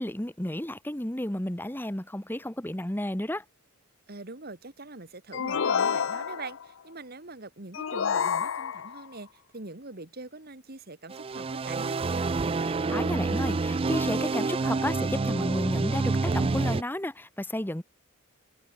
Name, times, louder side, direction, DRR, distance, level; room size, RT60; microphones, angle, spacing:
voice 1, 0.0-3.4 12.7-17.8, left 1 dB, 10° left, 1.2 m, -32 dB
voice 2, 4.1-12.3, right 3 dB, 50° right, 2.1 m, -43 dB
sound 1, 5.3-6.7 7.7-9.1, left 7 dB, 65° left, 0.5 m, -28 dB
sound 2, 11.1-16.8, right 3 dB, 25° right, 0.4 m, -28 dB
head